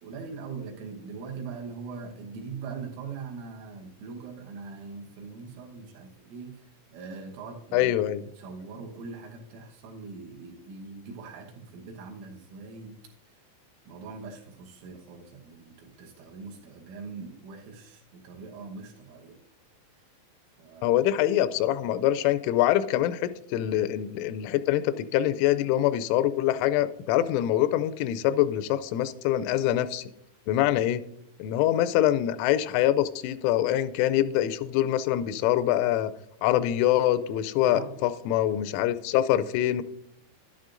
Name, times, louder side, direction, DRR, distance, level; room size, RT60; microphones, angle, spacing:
voice 1, 0.0-7.9 8.4-13.1 13.9-19.4 20.6-21.0 30.6-30.9 37.6-38.0, right 4 dB, 85° right, 0 dB, 3.7 m, -42 dB
voice 2, 7.7-8.2 20.8-30.0 30.5-31.0 31.4-36.1 36.4-39.8, left 12 dB, 90° left, 13 dB, 3.0 m, -24 dB
11.5 x 11.0 x 2.5 m, 0.75 s
omnidirectional pair, 5.5 m